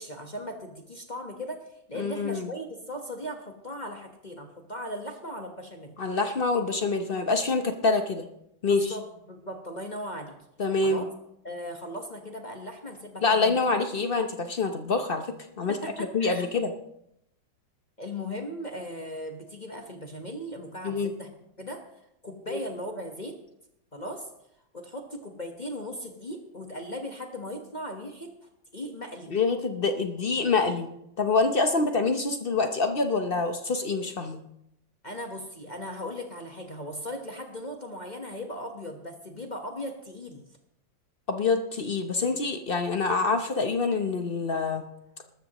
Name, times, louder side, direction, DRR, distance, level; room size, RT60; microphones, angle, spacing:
voice 1, 0.0-5.9 8.7-10.3 10.8-11.1 11.4-13.6 15.7-16.5 18.0-21.3 21.6-21.8 22.2-23.4 23.9-24.3 24.7-28.3 28.7-29.4 35.0-40.5, equal, 25° left, 2 dB, 1.1 m, -38 dB
voice 2, 2.0-2.5 6.0-8.3 8.6-8.9 10.6-11.0 13.2-15.8 16.1-16.7 20.8-21.1 22.5-22.6 29.3-30.9 31.2-34.4 41.3-44.8, left 4 dB, 55° left, 6 dB, 0.6 m, -26 dB
20.5 x 13.0 x 3.0 m, 0.79 s
omnidirectional pair, 2.1 m